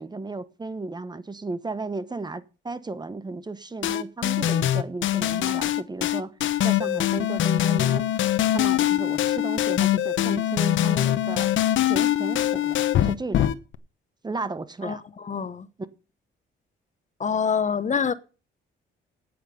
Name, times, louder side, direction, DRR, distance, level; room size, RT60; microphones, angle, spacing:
voice 1, 0.0-6.3 6.6-8.1 8.5-11.5 11.9-12.8 13.0-13.5 14.2-15.0, right 3 dB, 20° right, 1.0 m, -34 dB
sound 1, 3.8-13.7, left 12 dB, 75° left, 0.9 m, -23 dB
voice 2, 14.8-15.7 17.2-18.1, left 6 dB, 40° left, 0.9 m, -26 dB
9.1 x 8.8 x 6.9 m
cardioid pair, 90°, 20 cm